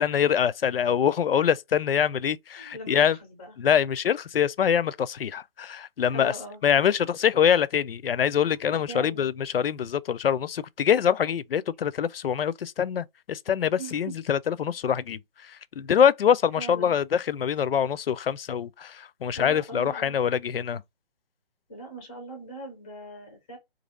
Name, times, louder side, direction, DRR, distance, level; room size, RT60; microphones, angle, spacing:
voice 1, 0.0-3.2 3.6-6.3 6.6-20.8, left 8 dB, 70° left, 0.4 m, -24 dB
voice 2, 2.6-3.5 6.1-6.6 8.6-9.3 13.8-14.2 16.6-17.0 19.3-20.2 21.7-23.6, right 1 dB, 10° left, 0.4 m, -40 dB
2.7 x 2.7 x 4.0 m
figure-of-eight pair, 145°, 30 cm